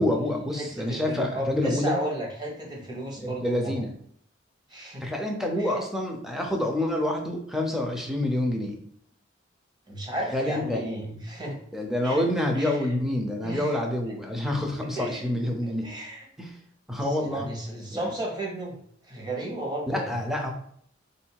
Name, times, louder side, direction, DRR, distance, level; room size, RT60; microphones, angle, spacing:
voice 1, 0.0-1.9 3.2-3.9 5.0-8.8 10.3-11.3 11.7-15.9 16.4-16.5 16.9-17.5 17.9-18.0 19.9-20.5, left 1 dB, ahead, 1 dB, 0.6 m, -27 dB
voice 2, 0.6-3.8 4.7-5.1 5.6-5.7 9.9-11.6 12.0-12.2 12.5-12.9 13.4-13.8 14.9-15.3 15.6-16.3 17.0-18.7 19.1-20.1, right 1 dB, 20° right, -2 dB, 1.2 m, -34 dB
3.7 x 2.7 x 4.5 m, 0.66 s
head